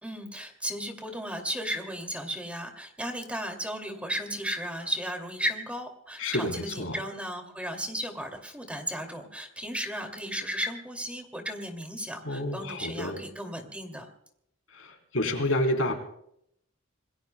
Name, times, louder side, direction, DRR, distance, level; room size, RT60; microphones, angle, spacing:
voice 1, 0.0-14.1, equal, 5° right, 4 dB, 2.5 m, -35 dB
voice 2, 6.2-7.0 12.2-13.2 14.7-15.9, left 1 dB, 80° left, 3 dB, 3.7 m, -29 dB
27.5 x 21.0 x 2.3 m, 0.72 s
head